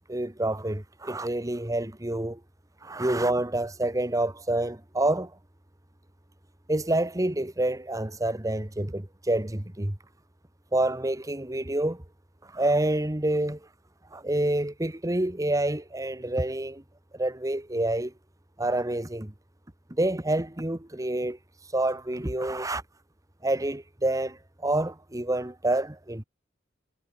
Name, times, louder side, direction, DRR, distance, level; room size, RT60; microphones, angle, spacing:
voice 1, 0.1-2.4 2.8-5.4 6.7-10.0 10.7-12.0 12.4-13.7 14.1-16.8 17.1-18.1 18.6-19.3 19.9-21.4 21.7-22.8 23.4-26.2, right 1 dB, 20° right, 1.4 m, -28 dB
head